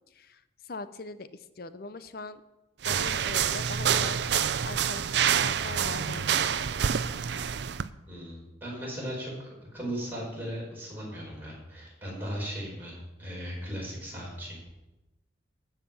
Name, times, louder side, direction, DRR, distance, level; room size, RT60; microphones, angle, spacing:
voice 1, 0.1-2.4 2.8-4.2 4.6-6.5, left 3 dB, 55° left, 12 dB, 0.7 m, -41 dB
sound 1, 2.8-7.9, right 8 dB, 65° right, 0.5 m, -27 dB
voice 2, 8.1-14.6, equal, 10° right, -4 dB, 4.6 m, -37 dB
14.5 x 5.8 x 7.0 m, 1.0 s
head